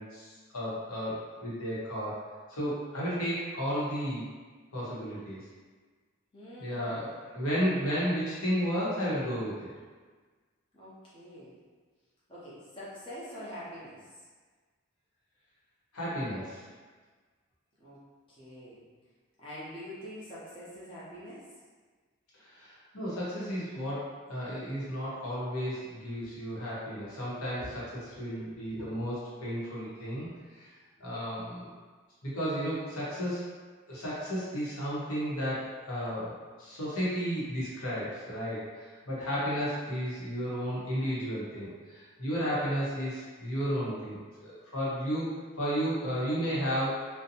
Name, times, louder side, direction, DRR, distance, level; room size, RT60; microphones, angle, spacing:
voice 1, 0.0-2.2 2.5-4.2 4.7-5.4 6.6-9.7 15.9-16.6 22.4-27.8 28.2-29.1 29.4-30.7 31.0-31.7 32.2-33.5 33.9-36.3 36.6-47.1, equal, 90° left, -8 dB, 0.9 m, -33 dB
voice 2, 6.3-7.2 10.7-11.6 12.3-14.1 17.8-18.0 18.3-18.8 19.4-21.4 26.2-26.3 27.6-27.7 28.3-28.9, equal, 25° left, -10 dB, 0.6 m, -45 dB
2.6 x 2.1 x 2.7 m, 1.4 s
head